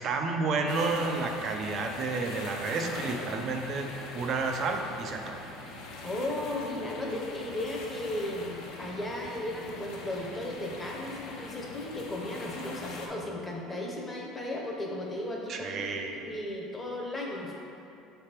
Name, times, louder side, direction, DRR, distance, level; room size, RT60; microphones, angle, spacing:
voice 1, 0.0-5.4 15.5-16.3, right 3 dB, 40° right, 3 dB, 0.5 m, -31 dB
sound 1, 0.7-13.1, left 2 dB, 65° left, 0.7 m, -42 dB
voice 2, 6.0-15.8 16.1-17.6, left 1 dB, 10° left, -2 dB, 0.8 m, -35 dB
6.5 x 3.4 x 4.4 m, 2.7 s
cardioid pair, 150°, 0 cm